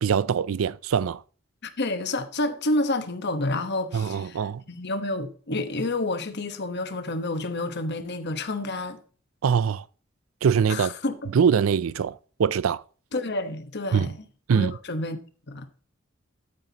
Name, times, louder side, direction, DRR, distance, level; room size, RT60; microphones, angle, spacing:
voice 1, 0.0-1.2 3.9-4.6 9.4-9.8 10.4-10.9 11.3-12.8 13.9-14.1 14.5-14.8, right 7 dB, 80° right, 0.4 m, -23 dB
voice 2, 1.6-9.0 10.7-11.1 13.1-14.2 14.5-15.2 15.5-15.6, left 2 dB, 55° left, 1.2 m, -29 dB
12.5 x 9.3 x 2.9 m
head